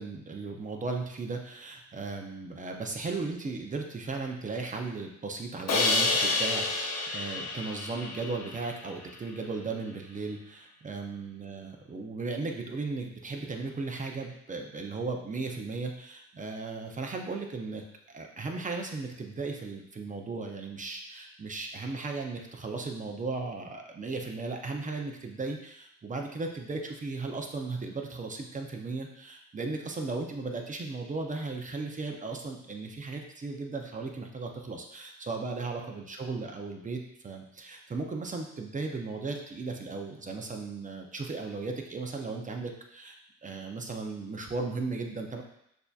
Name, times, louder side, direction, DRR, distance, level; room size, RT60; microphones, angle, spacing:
voice 1, 0.0-43.2 43.4-45.4, right 3 dB, 25° right, 2 dB, 0.6 m, -36 dB
Crash cymbal, 5.7-8.7, left 3 dB, 60° left, 0.8 m, -29 dB
6.5 x 2.7 x 2.4 m, 0.78 s
cardioid pair, 90°, 30 cm